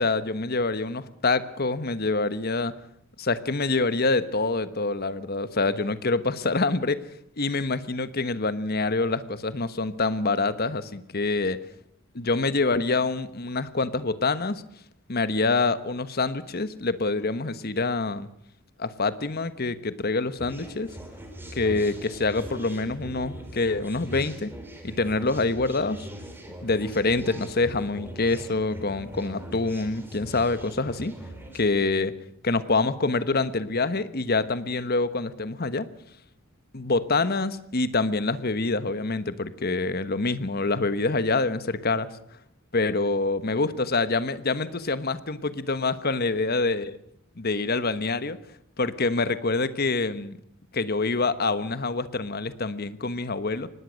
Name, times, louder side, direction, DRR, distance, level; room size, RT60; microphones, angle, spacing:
voice 1, 0.0-2.7 3.2-7.0 7.4-11.6 12.1-14.6 15.1-18.3 18.8-20.9 21.5-24.5 24.8-26.1 26.6-31.1 31.5-32.1 32.4-35.9 36.7-42.1 42.7-46.8 47.4-48.4 48.8-50.4 50.7-53.7, left 3 dB, 45° left, 13 dB, 1.2 m, -26 dB
sound 1, 20.4-31.6, right 1 dB, 10° right, 4.0 m, -41 dB
24.0 x 19.5 x 6.5 m, 0.71 s
head